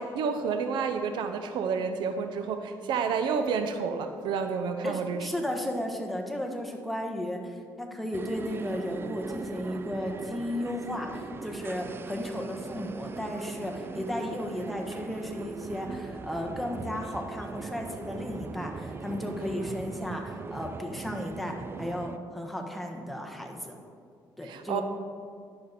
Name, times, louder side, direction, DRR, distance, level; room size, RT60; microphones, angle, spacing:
voice 1, 0.0-5.3 24.4-24.8, right 5 dB, 75° right, 8 dB, 0.6 m, -30 dB
voice 2, 4.8-23.7 24.4-24.8, left 1 dB, ahead, 2 dB, 1.3 m, -34 dB
sound 1, 8.1-22.2, right 5 dB, 30° right, 0.4 m, -40 dB
10.5 x 6.7 x 4.2 m, 2.2 s
cardioid pair, 90°, 8 cm